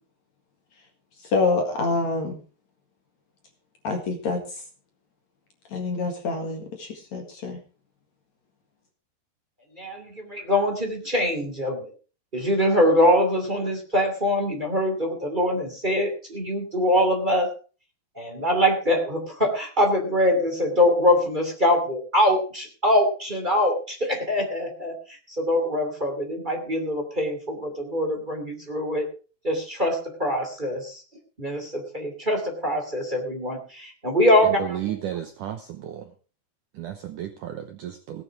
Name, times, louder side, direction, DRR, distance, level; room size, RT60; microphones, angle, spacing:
voice 1, 1.2-2.4 3.8-4.4 5.7-7.6, left 3 dB, 50° left, 4 dB, 2.6 m, -26 dB
voice 2, 9.7-11.9 12.3-17.5 18.2-29.1 29.4-31.0 31.4-34.6, left 1 dB, 15° right, 3 dB, 2.0 m, -23 dB
voice 3, 34.4-36.1 36.7-38.2, right 10 dB, 75° right, 7 dB, 2.0 m, -33 dB
17.5 x 9.5 x 4.7 m, 0.37 s
omnidirectional pair, 4.9 m